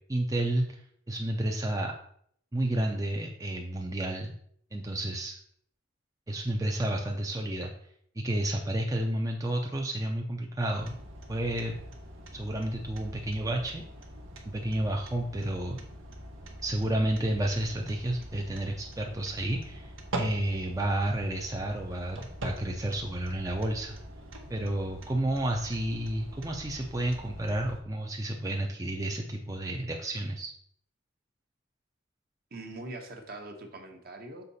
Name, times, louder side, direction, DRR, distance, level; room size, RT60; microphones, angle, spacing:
voice 1, 0.1-1.9 2.5-4.3 4.7-5.4 6.3-7.7 8.2-11.0 11.3-11.8 12.3-13.8 14.5-15.8 16.6-24.0 24.5-30.5, right 1 dB, 15° right, 1 dB, 0.5 m, -31 dB
sound 1, 10.8-27.8, right 1 dB, 85° right, 1.2 m, -43 dB
voice 2, 32.5-34.4, right 2 dB, 50° right, 3 dB, 1.1 m, -42 dB
6.7 x 4.7 x 4.1 m, 0.66 s
head